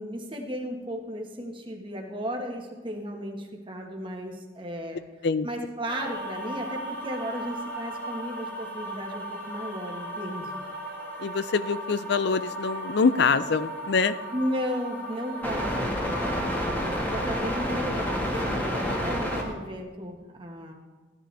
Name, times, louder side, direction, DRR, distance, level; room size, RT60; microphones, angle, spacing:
voice 1, 0.0-5.0 5.4-10.6 14.3-20.7, equal, 25° right, 1 dB, 1.4 m, -35 dB
sound 1, 5.9-19.5, equal, 10° left, 1.6 m, -32 dB
voice 2, 11.2-14.2, left 5 dB, 60° left, 14 dB, 0.5 m, -24 dB
14.5 x 10.5 x 3.4 m, 1.3 s
head